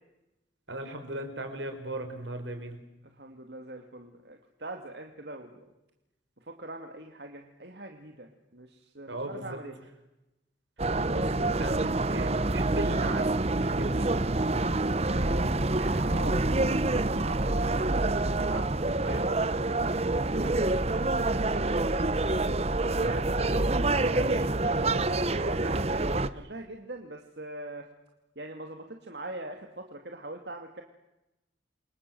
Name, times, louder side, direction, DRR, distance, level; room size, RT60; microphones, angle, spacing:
voice 1, 0.7-2.8 9.1-9.6 11.1-14.1 22.0-22.6 22.9-25.0, right 1 dB, 80° right, 6 dB, 5.8 m, -38 dB
voice 2, 3.1-5.7 6.4-9.8 15.0-22.2 23.0-23.4 24.8-27.9 28.4-30.8, right 2 dB, 60° right, 4 dB, 2.5 m, -42 dB
sound 1, 10.8-26.3, right 2 dB, 35° right, 1.0 m, -27 dB
29.5 x 25.0 x 7.9 m, 0.95 s
head